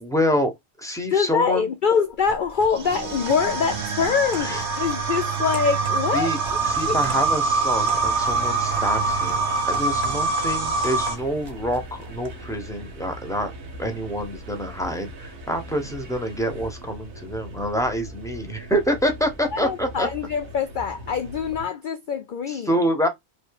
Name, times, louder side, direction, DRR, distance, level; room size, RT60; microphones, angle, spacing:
voice 1, 0.0-1.7 4.4-4.6 6.1-6.4 6.6-13.5 13.8-20.1 22.5-23.1, equal, 5° left, 0.4 m, -26 dB
voice 2, 1.1-6.3 6.9-7.0 19.5-22.7, left 6 dB, 80° left, 0.4 m, -24 dB
sound 1, 2.1-12.4, right 1 dB, 25° right, 0.7 m, -42 dB
sound 2, 2.7-11.2, right 4 dB, 60° right, 1.0 m, -24 dB
sound 3, 6.4-21.6, equal, 85° right, 1.4 m, -40 dB
3.1 x 2.8 x 4.6 m
omnidirectional pair, 1.4 m